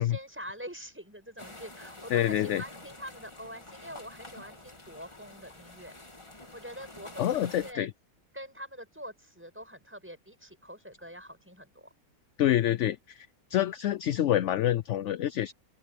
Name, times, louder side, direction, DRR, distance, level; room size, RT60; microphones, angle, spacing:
voice 1, 0.0-6.0 6.5-7.9 8.3-11.9, equal, 10° right, 7.2 m, -45 dB
sound 1, 1.4-7.7, left 2 dB, 20° left, 1.9 m, -48 dB
voice 2, 2.1-2.6 7.2-7.9 12.4-15.5, left 12 dB, 65° left, 0.8 m, -27 dB
open air
omnidirectional pair, 1.6 m